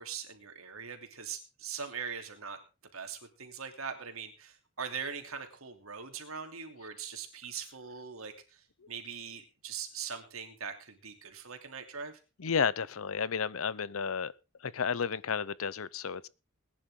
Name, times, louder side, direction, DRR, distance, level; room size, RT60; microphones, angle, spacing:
voice 1, 0.0-2.6 2.9-12.2, right 6 dB, 85° right, 3.0 m, -41 dB
voice 2, 12.4-14.3 14.6-16.3, left 6 dB, 75° left, 0.7 m, -32 dB
20.0 x 10.5 x 3.8 m
head